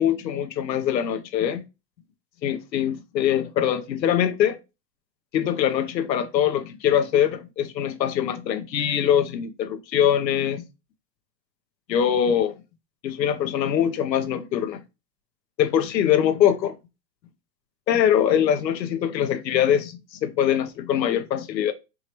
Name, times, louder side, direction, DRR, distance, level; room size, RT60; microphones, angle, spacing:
voice 1, 0.0-1.6 2.4-4.6 5.3-10.7 11.9-12.5 13.0-14.8 15.6-16.8 17.9-21.7, left 9 dB, 85° left, 0.9 m, -23 dB
5.0 x 2.8 x 2.9 m
hypercardioid pair, 135°, 50 cm